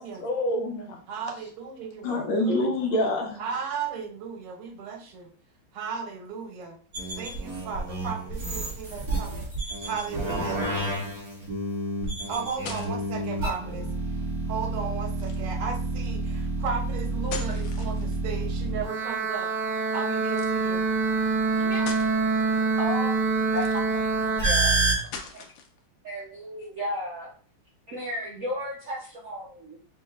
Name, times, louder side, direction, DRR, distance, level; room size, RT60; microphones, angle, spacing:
voice 1, 0.0-1.0 2.0-3.4, left 1 dB, 70° left, 2 dB, 1.3 m, -26 dB
voice 2, 1.1-2.7 3.4-5.3 5.7-6.8 7.2-9.5 9.8-10.7 12.3-13.9 14.5-19.5 19.9-20.8, right 6 dB, 90° right, 4 dB, 1.7 m, -35 dB
sound 1, 6.9-24.9, right 3 dB, 45° right, 1.8 m, -27 dB
sound 2, 12.2-13.2 15.1-15.6 17.0-18.4 20.3-20.6 21.2-21.3 21.7-22.1 23.4-24.1 25.0-25.8, left 5 dB, 85° left, 1.6 m, -41 dB
voice 3, 22.8-23.1 23.5-23.7 23.9-24.7 25.2-25.4 26.0-27.3 27.9-29.8, equal, 65° right, -4 dB, 0.8 m, -34 dB
6.2 x 2.8 x 2.4 m, 0.43 s
omnidirectional pair, 2.4 m